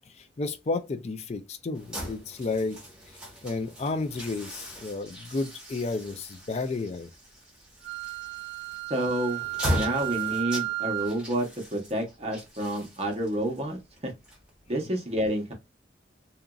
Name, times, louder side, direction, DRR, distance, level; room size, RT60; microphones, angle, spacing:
voice 1, 0.2-2.8 3.4-7.1, left 3 dB, 35° left, 0.4 m, -32 dB
sound 1, 1.7-14.8, equal, 5° right, 1.1 m, -38 dB
Wind instrument woodwind instrument, 7.8-11.2, right 22 dB, 80° right, 0.3 m, -33 dB
voice 2, 8.9-14.1 14.7-15.5, right 1 dB, 35° right, 0.8 m, -29 dB
2.8 x 2.5 x 2.3 m
head